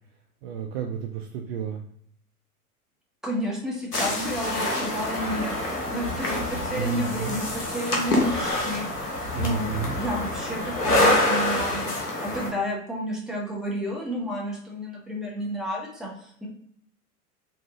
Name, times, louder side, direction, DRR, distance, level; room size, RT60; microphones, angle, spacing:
voice 1, 0.4-1.8 6.8-7.4 9.3-10.0, right 8 dB, 45° right, 3 dB, 0.4 m, -31 dB
voice 2, 3.2-5.6 5.9-11.9 12.2-16.5, equal, ahead, -3 dB, 0.9 m, -31 dB
sound 1, 3.9-12.5, left 1 dB, 90° left, 1.0 m, -26 dB
4.0 x 2.6 x 2.7 m, 0.66 s
figure-of-eight pair, 90°, 45 cm